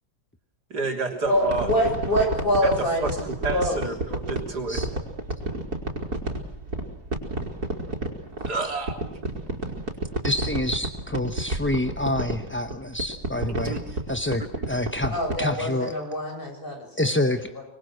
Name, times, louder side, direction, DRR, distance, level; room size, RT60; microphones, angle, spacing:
voice 1, 0.7-1.7 2.6-4.8 8.4-9.0 13.6-14.0 14.4-14.5, right 3 dB, 90° right, 3 dB, 4.0 m, -30 dB
voice 2, 1.2-3.8 15.1-17.6, equal, 35° left, 2 dB, 7.3 m, -26 dB
sound 1, 1.5-15.5, right 2 dB, 70° right, 4.5 m, -30 dB
voice 3, 10.2-13.8 14.1-15.9 17.0-17.5, left 1 dB, 10° left, 8 dB, 0.6 m, -27 dB
26.0 x 21.5 x 6.3 m, 0.71 s
omnidirectional pair, 1.7 m